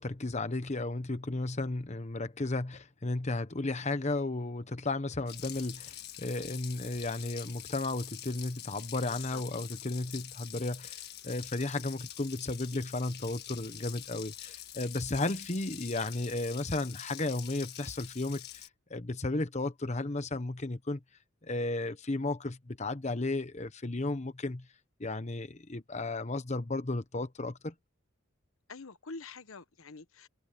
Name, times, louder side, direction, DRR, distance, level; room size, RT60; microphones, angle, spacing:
voice 1, 0.0-21.0 21.4-24.7 25.0-27.7, left 2 dB, 35° left, 1.0 m, -34 dB
Water tap faucet, 5.3-18.7, left 11 dB, 50° left, 1.7 m, -46 dB
voice 2, 9.1-9.4 9.7-9.8 28.7-30.3, left 4 dB, 85° left, 1.2 m, -46 dB
head